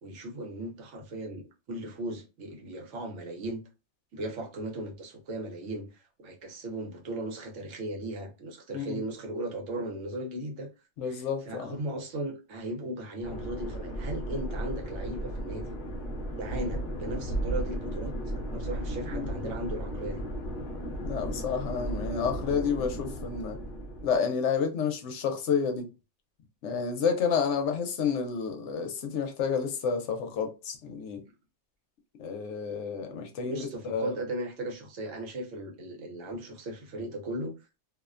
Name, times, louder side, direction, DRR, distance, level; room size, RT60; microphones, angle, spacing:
voice 1, 0.0-3.6 4.1-10.7 11.0-15.8 16.4-18.1 18.5-20.2 33.5-37.6, right 1 dB, 75° right, 1.1 m, -37 dB
voice 2, 11.0-11.8 19.1-19.4 21.0-23.6 24.0-25.9 26.6-31.2 32.2-34.1, left 6 dB, 75° left, 0.9 m, -30 dB
sound 1, 13.2-24.2, right 1 dB, 50° left, 0.6 m, -35 dB
2.5 x 2.1 x 2.4 m
omnidirectional pair, 1.2 m